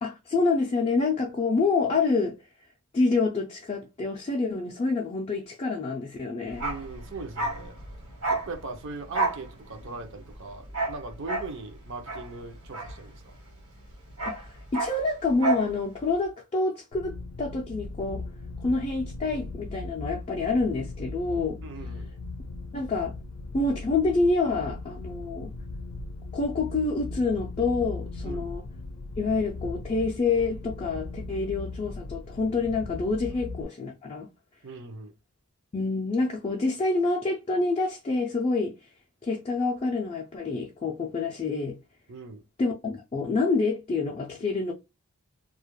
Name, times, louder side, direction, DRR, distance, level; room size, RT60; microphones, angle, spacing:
voice 1, 0.0-2.4 2.9-6.6 14.3-18.2 18.6-21.6 22.7-23.1 23.5-25.5 26.3-28.6 29.2-34.3 35.7-38.7 39.2-41.8 42.6-44.7, left 3 dB, 25° left, 0.3 m, -27 dB
Bark, 6.5-13.5 13.8-15.7 16.0-16.1, right 2 dB, 75° right, 1.1 m, -31 dB
voice 2, 6.6-7.7 8.3-13.4 21.6-22.1 28.2-28.5 34.6-35.1 42.1-42.4, right 3 dB, 55° right, 0.5 m, -40 dB
sound 1, 16.9-33.6, left 3 dB, 90° left, 0.5 m, -38 dB
2.3 x 2.1 x 2.9 m
head